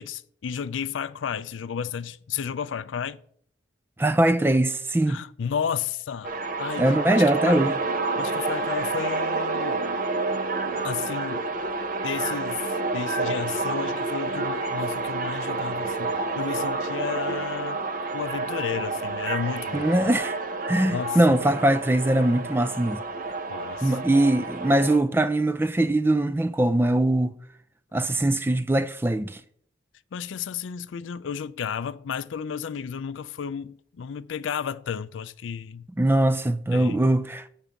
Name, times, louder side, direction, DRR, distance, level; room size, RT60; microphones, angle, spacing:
voice 1, 0.0-3.2 5.1-7.6 8.2-9.9 10.8-11.5 12.0-17.8 18.1-20.1 20.9-21.2 23.5-24.0 30.1-35.9 36.7-37.0, left 7 dB, 85° left, 0.4 m, -32 dB
voice 2, 4.0-5.2 6.8-7.7 19.7-20.4 20.7-23.0 23.8-27.3 27.9-29.4 36.0-37.4, right 1 dB, 10° right, 0.3 m, -22 dB
sound 1, 6.2-25.0, right 3 dB, 45° right, 0.7 m, -29 dB
7.3 x 5.2 x 6.9 m
head